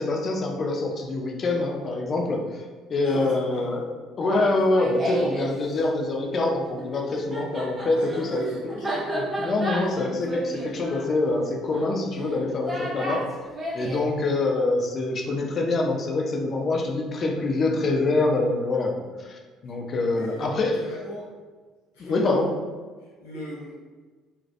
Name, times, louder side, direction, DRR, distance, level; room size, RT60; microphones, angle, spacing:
voice 1, 0.0-2.6 2.9-3.8 4.2-8.4 8.9-13.3 13.7-20.8 22.0-22.5, left 2 dB, 40° left, 1 dB, 0.4 m, -25 dB
voice 2, 3.0-3.7 4.2-4.6 7.9-9.1 20.1-20.5 20.7-21.3 21.9-22.2 23.0-23.7, equal, 70° left, -7 dB, 0.8 m, -39 dB
Laughter, 4.5-5.5 6.8-14.1, equal, 25° right, 0.5 m, -32 dB
2.2 x 2.1 x 2.7 m, 1.4 s
figure-of-eight pair, 55°, 0 cm